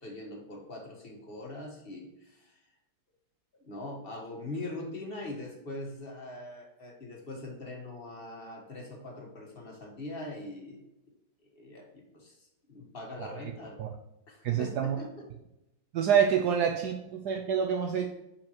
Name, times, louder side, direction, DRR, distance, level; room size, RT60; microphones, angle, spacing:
voice 1, 0.0-2.6 3.6-10.8 11.5-13.8 14.3-15.3, left 2 dB, 35° left, 0 dB, 1.5 m, -42 dB
voice 2, 14.4-15.0 15.9-18.1, right 8 dB, 70° right, 3 dB, 1.1 m, -27 dB
7.0 x 5.2 x 2.9 m, 0.91 s
omnidirectional pair, 2.0 m